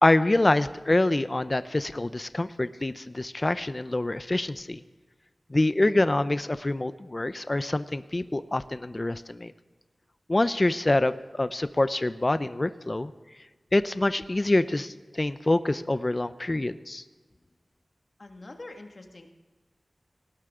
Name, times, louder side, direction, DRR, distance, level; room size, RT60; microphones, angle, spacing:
voice 1, 0.0-4.8 5.5-9.5 10.3-13.1 13.7-17.0, left 2 dB, 35° left, 13 dB, 0.6 m, -25 dB
voice 2, 18.2-19.3, left 2 dB, 55° left, 3 dB, 1.9 m, -44 dB
19.0 x 18.0 x 3.8 m, 1.3 s
wide cardioid pair, 70°, 0 cm